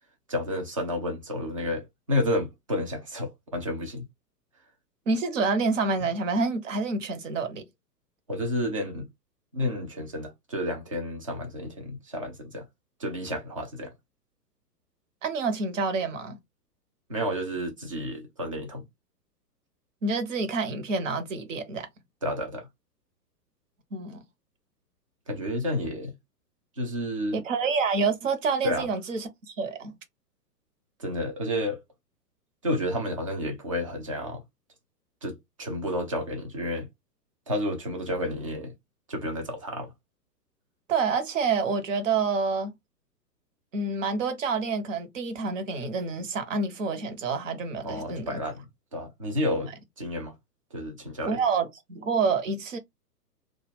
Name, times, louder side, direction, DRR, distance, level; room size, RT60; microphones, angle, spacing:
voice 1, 0.3-4.1 8.3-9.1 9.5-12.7 13.0-13.9 17.1-18.8 22.2-22.7 25.3-26.1 26.8-27.4 28.6-28.9 31.0-31.8 32.6-34.4 35.2-36.9 37.5-38.7 39.1-39.9 47.8-48.6 48.9-50.3 50.7-51.4, left 1 dB, 20° right, 0.4 m, -31 dB
voice 2, 5.1-7.7 15.2-16.4 20.0-21.9 23.9-24.2 27.3-30.0 40.9-42.7 43.7-48.4 51.2-52.8, right 4 dB, 50° right, 0.9 m, -28 dB
2.3 x 2.2 x 3.3 m
figure-of-eight pair, 115°, 49 cm